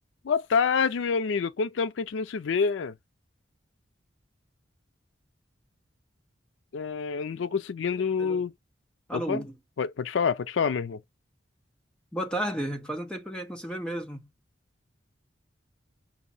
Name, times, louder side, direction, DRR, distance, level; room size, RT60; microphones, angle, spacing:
voice 1, 0.2-2.9 6.7-8.5 9.1-9.4 9.8-11.0, left 5 dB, 80° left, 0.4 m, -27 dB
voice 2, 9.1-9.6 12.1-14.3, right 1 dB, 5° left, 0.8 m, -33 dB
7.1 x 2.7 x 5.4 m
head